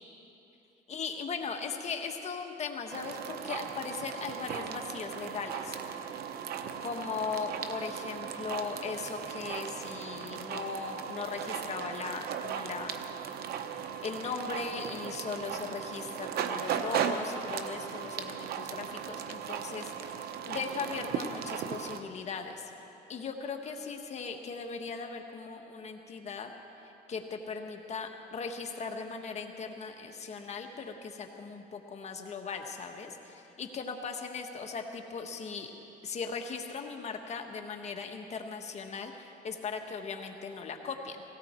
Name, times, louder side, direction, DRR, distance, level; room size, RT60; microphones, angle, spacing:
voice 1, 0.9-5.8 6.8-13.0 14.0-22.7 23.1-26.5 26.8-35.7 36.0-41.2, left 5 dB, 40° left, 4 dB, 1.4 m, -38 dB
sound 1, 2.9-22.0, right 8 dB, 65° right, 0.9 m, -37 dB
18.0 x 17.0 x 4.5 m, 3.0 s
cardioid pair, 110°, 17 cm